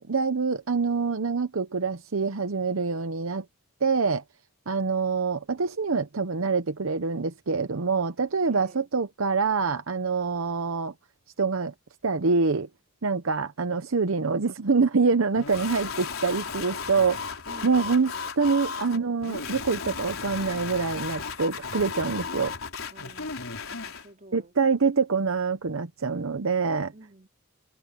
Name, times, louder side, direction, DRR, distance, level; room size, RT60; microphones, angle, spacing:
voice 1, 0.0-3.4 3.8-4.2 4.7-10.9 11.4-11.7 12.0-12.7 13.0-17.3 17.6-22.5 24.3-26.9, right 4 dB, 70° right, 0.8 m, -25 dB
voice 2, 8.5-8.9 17.5-18.1 22.9-24.5 26.9-27.3, right 1 dB, 35° right, 3.6 m, -50 dB
sound 1, 15.4-24.1, left 5 dB, 75° left, 4.1 m, -35 dB
head